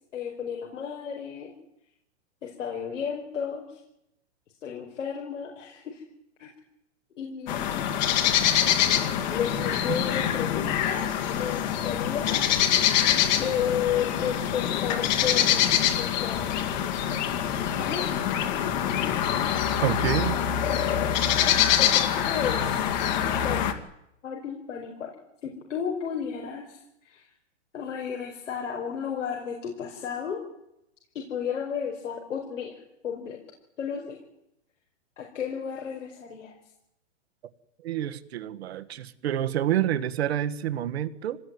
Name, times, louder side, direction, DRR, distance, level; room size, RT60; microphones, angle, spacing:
voice 1, 0.1-1.5 2.4-3.8 4.6-6.0 6.4-6.5 7.2-7.9 9.3-12.5 13.4-16.9 17.7-18.1 21.4-23.0 23.4-23.7 24.2-25.1 25.4-27.3 27.7-30.4 31.2-32.7 33.0-33.4 33.8-34.2 35.2-36.6, left 8 dB, 80° left, 0 dB, 5.3 m, -33 dB
sound 1, 7.5-23.7, left 10 dB, 35° left, 2.2 m, -25 dB
voice 2, 19.8-20.4 37.8-41.4, right 11 dB, 55° right, 9 dB, 1.7 m, -28 dB
25.5 x 18.5 x 9.7 m, 0.82 s
hypercardioid pair, 165°, 37 cm